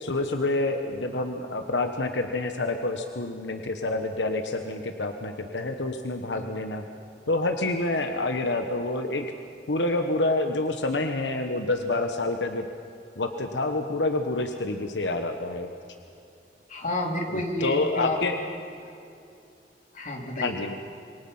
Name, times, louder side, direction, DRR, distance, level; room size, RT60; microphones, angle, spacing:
voice 1, 0.0-6.8 7.3-9.3 9.7-12.7 13.2-15.7 17.3-18.3 20.4-20.7, left 2 dB, 85° left, 6 dB, 1.2 m, -28 dB
voice 2, 16.7-18.2 18.8-18.9 19.9-20.5, left 1 dB, 45° left, 1 dB, 3.2 m, -30 dB
26.5 x 23.5 x 5.6 m, 2.6 s
head